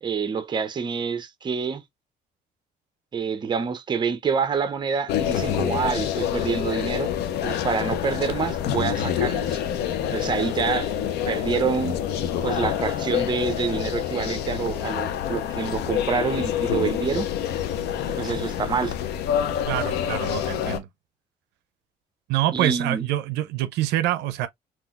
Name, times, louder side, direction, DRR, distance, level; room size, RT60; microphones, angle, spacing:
voice 1, 0.0-1.8 3.1-7.1 7.4-9.6 10.1-10.9 11.3-12.0 12.4-17.3 18.1-18.9 22.5-23.1, right 6 dB, 25° right, 0.5 m, -27 dB
sound 1, 5.1-20.8, left 10 dB, 75° left, 0.5 m, -27 dB
voice 2, 19.7-20.9 22.3-24.5, right 14 dB, 85° right, 0.4 m, -25 dB
3.7 x 2.3 x 2.3 m
cardioid pair, 110°, 17 cm